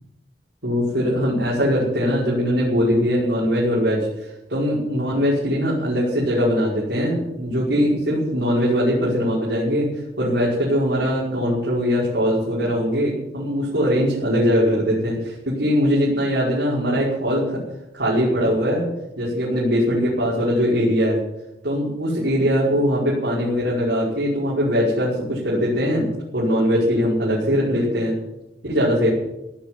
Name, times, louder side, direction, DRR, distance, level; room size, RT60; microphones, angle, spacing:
voice 1, 0.6-9.9 10.2-17.6 17.9-18.8 19.2-21.2 21.6-26.1 26.3-28.1 28.6-29.1, equal, 85° right, -6 dB, 5.4 m, -21 dB
17.0 x 8.5 x 9.8 m, 0.93 s
head